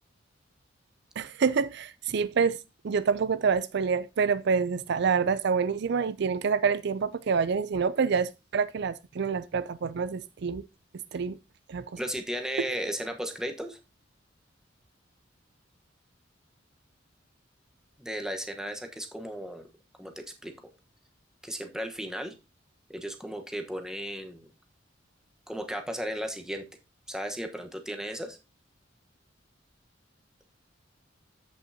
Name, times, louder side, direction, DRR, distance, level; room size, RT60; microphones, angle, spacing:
voice 1, 1.2-2.6 2.8-10.6 11.1-11.4 11.7-12.0 12.6-12.7, right 5 dB, 60° right, 0.4 m, -27 dB
voice 2, 12.0-13.8 18.0-19.7 20.0-20.5 21.4-22.4 22.9-24.5 25.5-26.7 27.1-28.4, equal, 5° right, 1.2 m, -35 dB
14.0 x 5.5 x 2.8 m
head